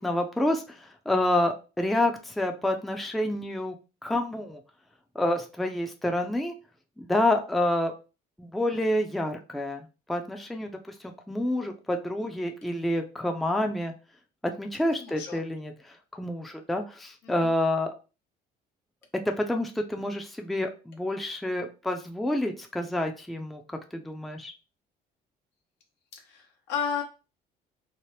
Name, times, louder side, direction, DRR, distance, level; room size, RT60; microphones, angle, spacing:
voice 1, 0.0-3.8 4.0-4.6 5.1-6.6 7.0-7.9 8.4-13.9 14.4-17.9 19.3-24.5, left 1 dB, ahead, 4 dB, 0.4 m, -28 dB
voice 2, 15.0-15.4 17.2-17.5 26.1-27.0, left 7 dB, 80° left, 1 dB, 0.9 m, -33 dB
2.8 x 2.0 x 3.1 m, 0.32 s
cardioid pair, 110°, 17 cm